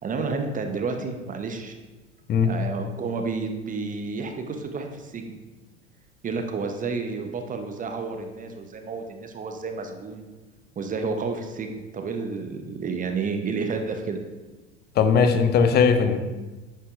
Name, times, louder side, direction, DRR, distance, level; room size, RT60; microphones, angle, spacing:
voice 1, 0.0-1.7 2.4-5.3 6.2-10.2 10.8-14.2, right 4 dB, 20° right, 5 dB, 0.9 m, -30 dB
voice 2, 15.0-16.2, left 6 dB, 25° left, 8 dB, 0.8 m, -19 dB
10.5 x 8.4 x 2.5 m, 1.2 s
figure-of-eight pair, 75°, 36 cm